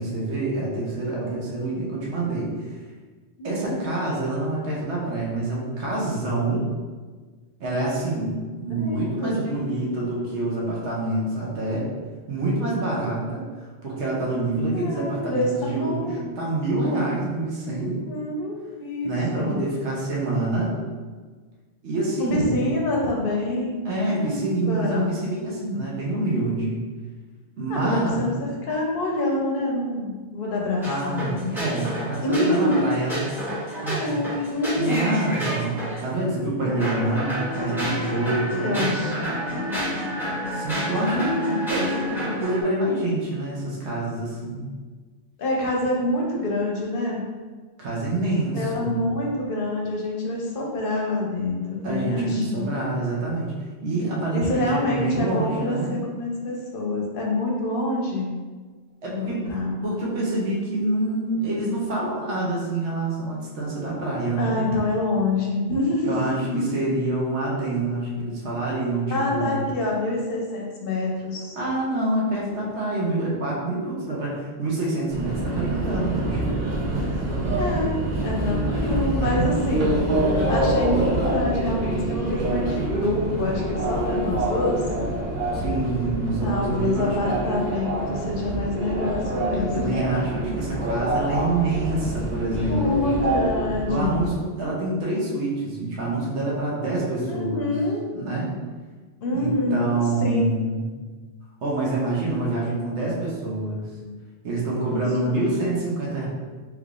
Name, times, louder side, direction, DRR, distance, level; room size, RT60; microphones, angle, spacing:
voice 1, 0.0-2.7 3.4-6.6 7.6-8.3 8.6-11.9 12.3-18.0 19.0-20.7 21.8-22.6 23.8-26.8 27.6-28.3 30.8-33.3 33.8-34.2 34.7-38.9 40.5-41.1 41.7-44.6 47.8-49.0 51.8-53.5 53.8-56.0 59.0-59.4 59.8-64.6 66.0-69.5 71.6-76.6 79.1-79.5 85.5-87.4 89.6-93.1 93.8-97.7 98.1-98.5 99.3-100.8 101.6-103.8 104.4-106.3, right 2 dB, 70° right, -4 dB, 1.1 m, -26 dB
voice 2, 3.4-3.8 8.7-9.4 10.2-10.3 14.7-16.2 17.7-19.7 22.2-25.1 27.7-31.6 32.2-32.8 33.7-35.1 38.6-40.1 41.1-41.6 45.4-47.3 48.5-52.7 54.3-58.3 59.1-59.8 64.4-66.2 66.5-66.6 69.1-71.5 77.5-78.0 78.2-80.0 80.5-84.8 86.4-90.0 92.7-94.3 97.3-98.0 99.2-99.9 100.2-100.5 103.9-104.2 104.8-105.4, left 2 dB, 55° left, -2 dB, 0.8 m, -26 dB
sound 1, 30.8-36.0 36.6-42.6, equal, ahead, 0.8 m, -29 dB
Subway metro underground, 75.1-94.3, right 1 dB, 45° right, 0.7 m, -26 dB
3.5 x 3.3 x 2.4 m, 1.4 s
omnidirectional pair, 1.2 m